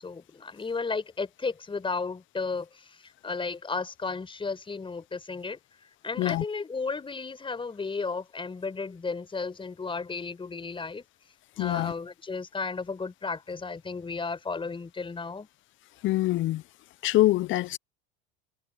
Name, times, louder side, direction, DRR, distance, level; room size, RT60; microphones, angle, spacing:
voice 1, 0.0-5.6 6.0-11.0 11.6-15.5, left 4 dB, 20° left, 5.3 m, -34 dB
voice 2, 11.6-11.9 16.0-16.6 17.0-17.8, left 16 dB, 40° left, 0.7 m, -24 dB
hypercardioid pair, 95°, 29 cm